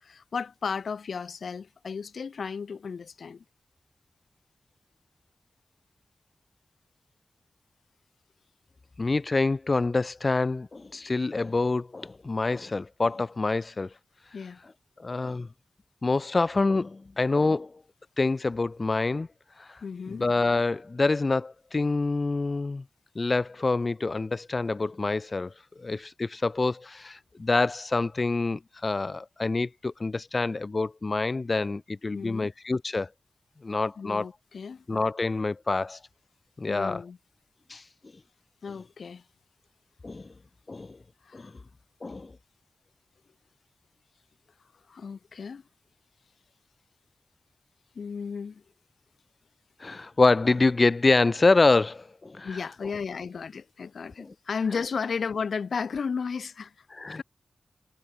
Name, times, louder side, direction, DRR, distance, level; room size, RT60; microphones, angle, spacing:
voice 1, 0.0-3.4 14.3-14.6 19.8-20.2 32.1-32.5 34.0-34.8 36.7-37.2 38.6-39.2 41.2-41.5 44.9-45.6 47.9-48.6 52.4-56.7 57.1-57.2, left 5 dB, 80° left, 2.7 m, -34 dB
voice 2, 9.0-13.9 15.0-15.5 16.0-17.8 18.2-19.3 19.6-19.8 20.1-22.8 23.1-25.5 25.8-33.1 33.6-34.3 34.9-36.0 36.6-37.0 37.7-37.8 40.0-40.3 40.7-41.0 41.3-41.5 42.0-42.3 49.8-52.9 54.2-54.3 56.9-57.2, left 3 dB, 40° left, 1.0 m, -26 dB
wide cardioid pair, 75°, 0 cm